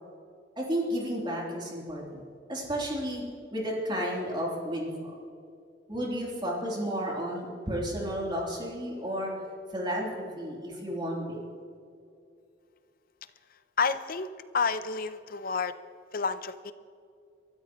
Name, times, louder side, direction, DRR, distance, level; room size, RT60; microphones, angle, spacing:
voice 1, 0.6-2.2 2.5-3.2 3.5-5.1 5.9-9.3 9.7-11.4, equal, 25° right, -3 dB, 3.3 m, -32 dB
voice 2, 13.8-14.3 14.5-15.7 16.1-16.7, left 5 dB, 50° left, 12 dB, 0.7 m, -29 dB
23.5 x 13.5 x 3.1 m, 2.5 s
head